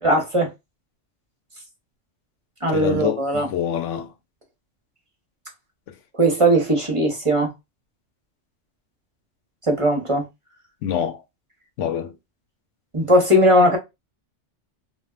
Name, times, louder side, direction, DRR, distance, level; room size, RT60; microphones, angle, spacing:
voice 1, 0.0-0.5 2.6-3.5 6.2-7.5 9.7-10.3 12.9-13.8, equal, 30° right, 0.9 m, -18 dB
voice 2, 2.7-4.1 10.8-11.2 11.8-12.1, left 9 dB, 85° left, 1.0 m, -25 dB
3.3 x 2.5 x 2.3 m
omnidirectional pair, 1.2 m